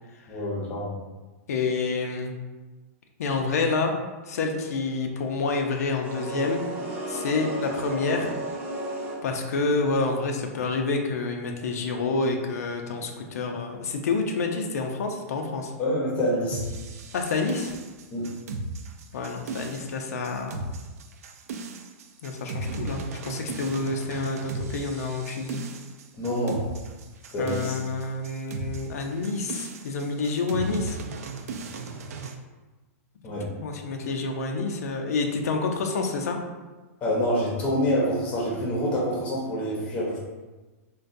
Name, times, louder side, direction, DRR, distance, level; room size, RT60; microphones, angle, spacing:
voice 1, 0.3-1.0 15.8-16.6 18.1-18.3 26.1-26.6 27.3-27.8 33.2-33.5 37.0-40.2, equal, 15° left, -4 dB, 0.6 m, -26 dB
voice 2, 1.5-2.3 3.2-3.9 4.3-6.6 7.1-8.3 9.2-15.7 17.1-17.7 19.1-20.6 22.2-25.6 27.4-31.0 33.6-36.4, left 3 dB, 90° left, 3 dB, 0.5 m, -28 dB
sound 1, 6.0-9.5, right 1 dB, 25° right, 0.7 m, -33 dB
sound 2, 16.5-32.3, right 3 dB, 75° right, 0.4 m, -36 dB
3.9 x 2.2 x 2.5 m, 1.2 s
supercardioid pair, 170°, 8 cm